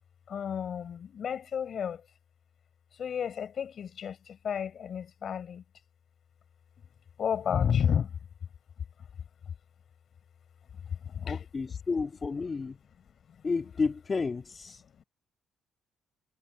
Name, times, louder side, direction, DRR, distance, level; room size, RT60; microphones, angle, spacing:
voice 1, 0.3-2.1 2.9-5.6 7.2-8.2 10.7-11.4 13.3-13.4 15.0-15.1, left 8 dB, 55° left, 4.9 m, -32 dB
voice 2, 11.2-12.8 13.4-15.0, left 4 dB, 35° left, 2.1 m, -32 dB
cardioid pair, 90°, 0 cm